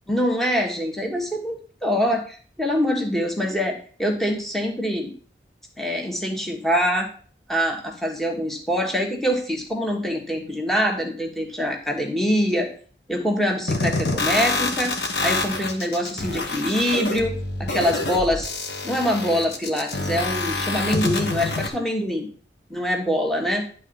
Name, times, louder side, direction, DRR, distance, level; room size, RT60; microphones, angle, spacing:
voice 1, 0.1-5.1 5.8-7.1 7.5-12.7 13.1-14.9 15.2-18.5 18.8-22.3 22.7-23.7, equal, ahead, 0 dB, 1.4 m, -24 dB
sound 1, 13.7-21.7, left 2 dB, 70° left, 1.4 m, -27 dB
11.0 x 4.0 x 6.9 m, 0.43 s
head